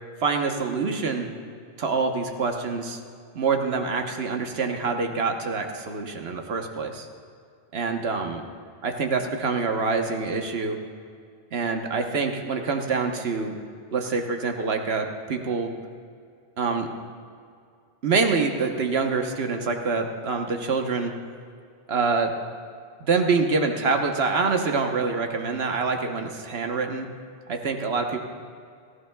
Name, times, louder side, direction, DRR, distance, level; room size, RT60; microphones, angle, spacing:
voice 1, 0.2-1.3 1.8-3.0 3.3-7.1 7.7-8.4 8.8-10.8 11.5-13.6 13.9-15.7 16.6-16.9 18.0-21.1 21.9-22.3 23.0-27.1 27.5-28.2, right 4 dB, 80° right, 4 dB, 1.3 m, -26 dB
18.0 x 14.5 x 2.3 m, 2.3 s
omnidirectional pair, 1.0 m